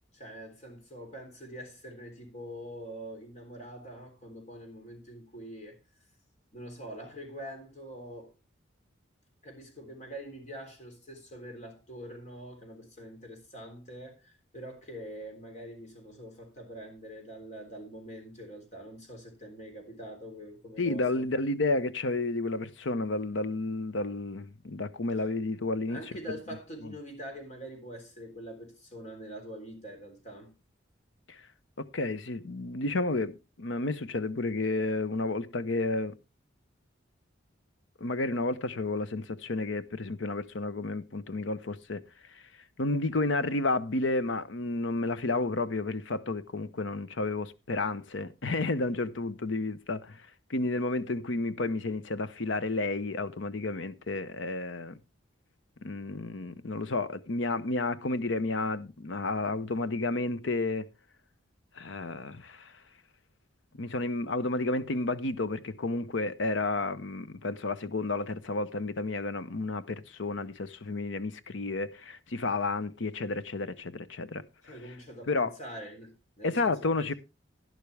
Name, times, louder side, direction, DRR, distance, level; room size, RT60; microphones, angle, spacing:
voice 1, 0.1-5.8 6.5-8.3 9.4-21.3 25.9-30.5 74.6-76.9, equal, 35° left, 3.5 m, -44 dB
voice 2, 20.8-26.0 26.3-26.4 26.8-26.9 31.3-31.4 31.8-36.2 38.0-42.0 42.3-42.4 42.8-50.2 50.5-55.0 55.8-60.9 61.8-62.7 63.7-74.4 75.3-75.5 76.4-77.1, left 2 dB, 75° left, 0.8 m, -31 dB
12.0 x 11.0 x 3.4 m
head